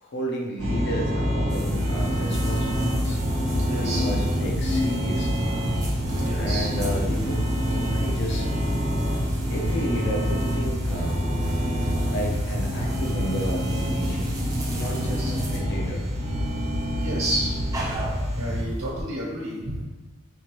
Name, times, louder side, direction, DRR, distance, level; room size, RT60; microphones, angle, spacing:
voice 1, 0.0-3.2 3.7-5.7 6.3-7.4 7.7-8.5 9.5-11.2 12.1-14.4 14.7-16.1, equal, 55° left, 0 dB, 0.6 m, -32 dB
sound 1, 0.6-18.6, equal, 80° right, 0.7 m, -26 dB
sound 2, 1.5-18.9, left 1 dB, 15° right, 0.5 m, -35 dB
voice 2, 3.6-4.0 6.2-6.7 15.0-15.3 16.9-17.6 18.4-19.8, right 1 dB, 65° right, -4 dB, 1.0 m, -30 dB
4.4 x 2.5 x 2.9 m, 1.2 s
head